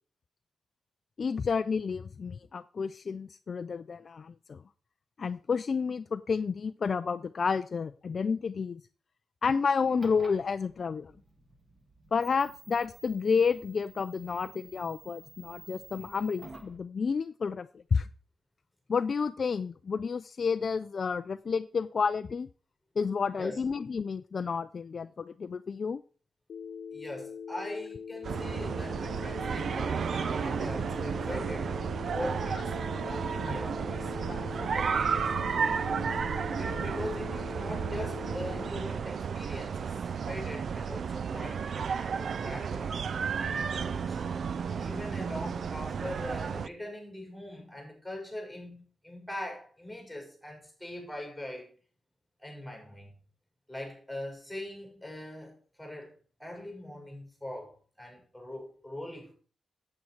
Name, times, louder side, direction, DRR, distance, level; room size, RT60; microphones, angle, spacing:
voice 1, 1.2-4.6 5.2-8.8 9.4-11.1 12.1-18.1 18.9-22.5 23.0-26.0 30.1-30.2 33.5-33.6, left 5 dB, 45° left, 0.4 m, -30 dB
sound 1, 9.8-16.8, right 2 dB, 20° right, 1.6 m, -52 dB
Telephone, 26.5-38.7, left 6 dB, 70° left, 0.9 m, -42 dB
voice 2, 26.9-31.7 32.1-35.8 36.6-43.0 43.4-44.2 44.8-51.7 52.4-53.1 53.7-59.3, left 1 dB, ahead, 5.2 m, -42 dB
sound 2, 28.2-46.7, right 6 dB, 60° right, 0.4 m, -32 dB
8.9 x 8.4 x 4.5 m
wide cardioid pair, 140°, 0 cm